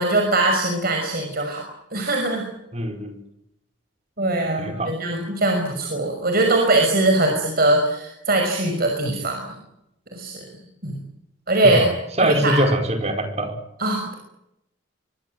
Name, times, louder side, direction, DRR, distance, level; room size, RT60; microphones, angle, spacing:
voice 1, 0.0-1.6 1.9-2.4 4.2-9.4 10.1-10.4 10.8-11.0 11.5-11.9 12.2-12.6 13.8-14.1, right 2 dB, 50° right, 3 dB, 5.6 m, -21 dB
voice 2, 2.7-3.2 4.6-4.9 11.6-13.6, right 1 dB, 35° right, 5 dB, 5.1 m, -23 dB
24.5 x 22.5 x 7.8 m, 0.83 s
head